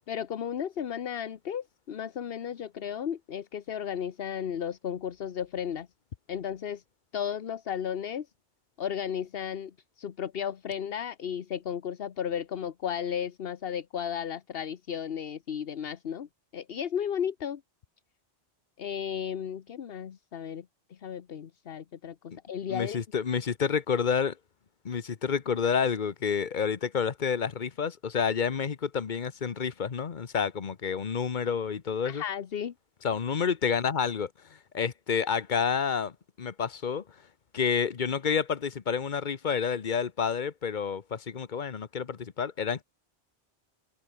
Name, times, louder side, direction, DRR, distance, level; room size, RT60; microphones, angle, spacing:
voice 1, 0.1-5.9 6.3-6.8 7.1-8.3 8.8-9.7 10.0-16.3 16.5-17.6 18.8-23.0 32.0-32.7, left 8 dB, 60° left, 1.1 m, -34 dB
voice 2, 22.7-24.4 24.8-32.2 33.0-34.3 34.7-37.0 37.5-42.8, left 6 dB, 45° left, 1.1 m, -29 dB
open air
omnidirectional pair, 1.2 m